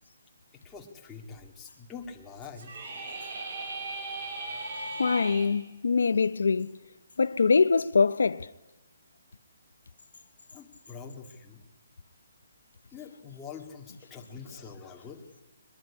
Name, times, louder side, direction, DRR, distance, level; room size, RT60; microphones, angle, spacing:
voice 1, 0.6-2.7 10.5-11.6 12.9-15.2, left 5 dB, 10° left, 2.1 m, -45 dB
sound 1, 2.6-5.5, right 2 dB, 40° right, 5.6 m, -37 dB
voice 2, 5.0-6.8 7.2-8.5, left 4 dB, 85° left, 0.8 m, -24 dB
23.0 x 21.0 x 9.9 m
hypercardioid pair, 175°, 0 cm